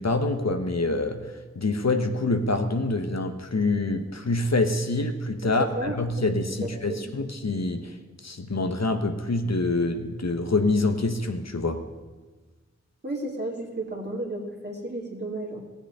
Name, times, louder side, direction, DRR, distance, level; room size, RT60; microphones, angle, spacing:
voice 1, 0.0-8.0 8.2-11.8, left 2 dB, 65° left, 6 dB, 1.2 m, -26 dB
voice 2, 5.4-6.2 6.9-7.1 13.0-15.6, right 1 dB, 35° right, -2 dB, 2.9 m, -33 dB
16.5 x 7.1 x 9.7 m, 1.3 s
wide cardioid pair, 45°, 29 cm